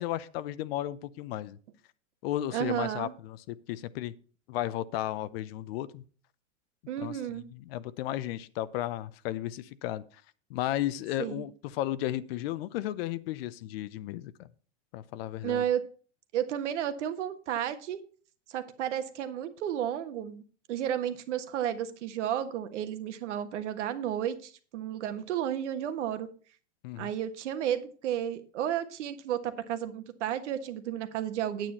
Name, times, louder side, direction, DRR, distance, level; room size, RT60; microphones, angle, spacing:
voice 1, 0.0-1.6 2.2-4.1 4.5-6.0 7.0-7.2 7.5-10.0 10.5-14.5 14.9-15.6 26.8-27.1, left 13 dB, 55° left, 0.8 m, -34 dB
voice 2, 2.5-3.1 6.9-7.4 11.2-11.4 15.4-15.8 16.3-18.0 18.5-20.4 20.7-26.3 26.9-31.7, right 10 dB, 70° right, 1.5 m, -32 dB
9.1 x 9.0 x 4.2 m
hypercardioid pair, 130°, 36 cm